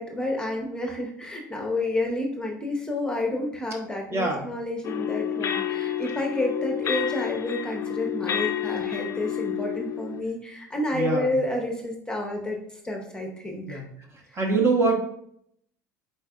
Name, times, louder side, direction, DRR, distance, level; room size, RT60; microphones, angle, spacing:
voice 1, 0.0-13.8, left 1 dB, 10° left, 1 dB, 0.8 m, -30 dB
voice 2, 4.1-4.5 10.9-11.3 13.7-13.9 14.1-15.0, right 3 dB, 25° right, 1 dB, 1.0 m, -24 dB
sound 1, 4.8-10.2, left 10 dB, 35° left, 0.4 m, -29 dB
4.4 x 4.2 x 2.4 m, 0.70 s
figure-of-eight pair, 65°, 10 cm